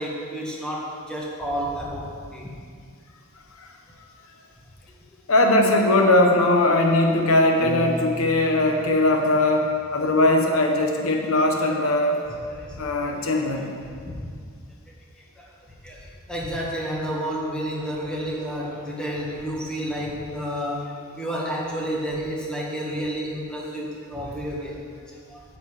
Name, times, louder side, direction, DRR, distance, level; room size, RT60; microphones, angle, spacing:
voice 1, 0.0-2.5 12.5-13.1 14.1-14.2 15.4-15.5 15.8-25.4, equal, 5° left, -5 dB, 1.7 m, -31 dB
voice 2, 5.3-12.2 12.8-13.7, left 2 dB, 70° left, 3 dB, 0.9 m, -20 dB
Piano, 7.6-9.8, left 2 dB, 60° right, 1.3 m, -36 dB
9.8 x 5.4 x 8.1 m, 2.2 s
head